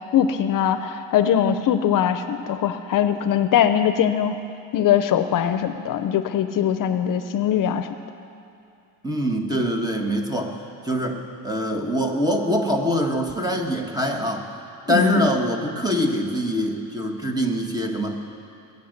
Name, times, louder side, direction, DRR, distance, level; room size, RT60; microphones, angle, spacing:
voice 1, 0.0-4.4 4.7-7.9 14.9-15.3, left 9 dB, 60° left, 10 dB, 0.7 m, -21 dB
voice 2, 9.0-14.5 14.9-18.2, equal, 10° right, 3 dB, 1.5 m, -24 dB
21.5 x 8.6 x 6.7 m, 2.6 s
cardioid pair, 110°, 36 cm